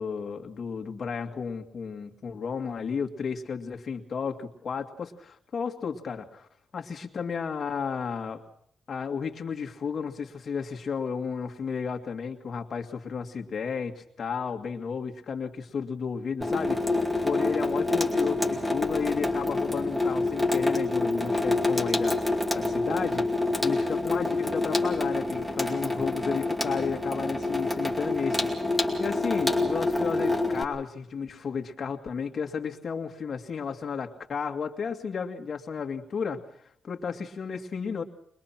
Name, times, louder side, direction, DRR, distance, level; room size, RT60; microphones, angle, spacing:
voice 1, 0.0-6.5 6.7-8.4 8.9-23.3 23.6-28.5 29.0-36.4 36.8-38.0, left 6 dB, 50° left, 3 dB, 2.2 m, -33 dB
Water tap faucet / Sink (filling or washing), 16.4-30.6, left 2 dB, 5° right, 2.5 m, -27 dB
23.5 x 21.0 x 5.9 m, 0.68 s
wide cardioid pair, 135°, 0 cm